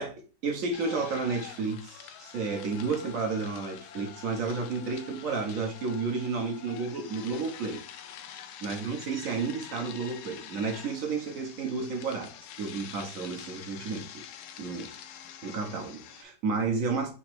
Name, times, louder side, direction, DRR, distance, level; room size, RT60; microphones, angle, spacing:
voice 1, 0.0-7.8 8.6-14.2 14.6-14.9 15.4-17.1, right 4 dB, 60° right, 0.9 m, -32 dB
sound 1, 0.7-16.2, left 9 dB, 80° left, 1.3 m, -46 dB
4.1 x 2.8 x 4.4 m
omnidirectional pair, 2.2 m